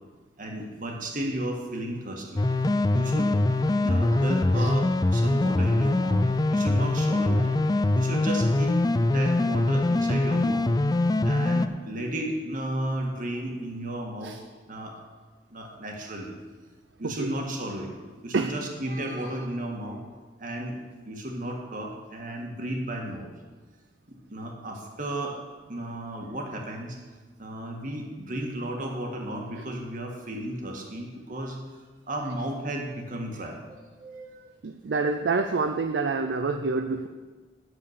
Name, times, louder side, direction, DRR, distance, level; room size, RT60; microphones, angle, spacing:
voice 1, 0.4-2.4 2.9-3.3 3.8-6.2 6.5-7.6 7.9-11.0 11.2-14.3 14.7-15.0 15.5-16.4 17.0-17.9 18.2-20.0 20.4-20.8 21.1-23.3 24.1-25.4 25.7-27.0 27.4-31.6 32.1-34.4, right 1 dB, 50° right, 1 dB, 1.8 m, -34 dB
sound 1, 2.4-11.7, left 2 dB, 20° left, 0.4 m, -23 dB
voice 2, 34.6-37.1, right 4 dB, 80° right, 7 dB, 0.5 m, -27 dB
9.7 x 7.3 x 6.9 m, 1.4 s
head